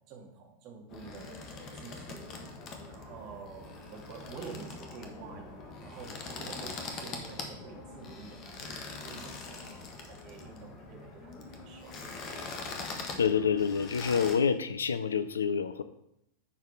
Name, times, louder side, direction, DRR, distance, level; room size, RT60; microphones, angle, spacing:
voice 1, 0.0-2.3 2.9-12.2, right 5 dB, 40° right, 0 dB, 2.2 m, -48 dB
sound 1, 0.9-14.4, left 3 dB, 35° left, 1.4 m, -43 dB
voice 2, 13.2-15.8, left 6 dB, 70° left, 13 dB, 0.5 m, -27 dB
10.0 x 4.7 x 4.8 m, 0.79 s
figure-of-eight pair, 90°, 0 cm